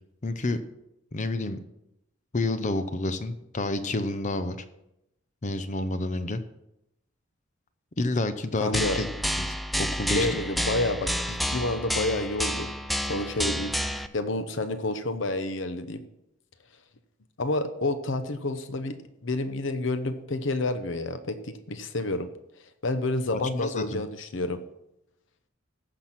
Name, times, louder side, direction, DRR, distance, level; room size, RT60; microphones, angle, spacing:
voice 1, 0.2-0.6 1.1-1.6 2.3-4.6 5.4-6.4 8.0-9.1 9.4-9.5 9.8-10.3 23.3-24.0, left 2 dB, 40° left, 10 dB, 0.7 m, -29 dB
voice 2, 8.6-9.0 10.1-12.7 13.0-13.8 14.1-16.0 17.4-22.3 22.8-24.6, left 2 dB, 65° left, 10 dB, 0.9 m, -29 dB
sound 1, 8.7-14.1, equal, ahead, 0.5 m, -29 dB
15.0 x 6.1 x 5.9 m, 0.83 s
head